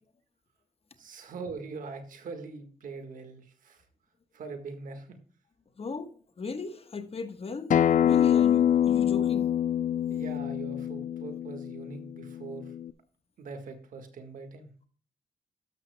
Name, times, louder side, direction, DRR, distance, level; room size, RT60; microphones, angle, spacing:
voice 1, 1.0-3.8 4.3-5.2 10.1-12.7 13.4-14.7, right 4 dB, 80° right, 1.7 m, -42 dB
voice 2, 5.8-9.5, left 4 dB, 45° left, 1.3 m, -37 dB
Acoustic guitar, 7.7-12.9, left 10 dB, 70° left, 0.5 m, -25 dB
13.0 x 12.0 x 2.3 m
cardioid pair, 55°, 14 cm